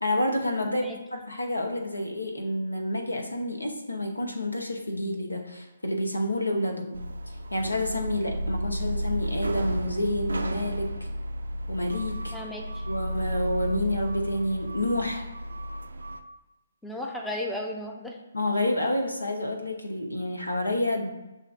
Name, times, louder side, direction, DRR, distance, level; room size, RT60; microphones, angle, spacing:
voice 1, 0.0-7.1 7.5-11.0 11.7-12.3 12.9-15.3 18.3-21.1, left 1 dB, 85° left, 3 dB, 0.8 m, -29 dB
sound 1, 6.9-16.2, equal, 75° right, 0.4 m, -32 dB
voice 2, 12.3-12.8 16.8-18.2, left 1 dB, 5° left, -1 dB, 0.5 m, -34 dB
7.4 x 2.6 x 2.5 m, 1.0 s
figure-of-eight pair, 135°, 0 cm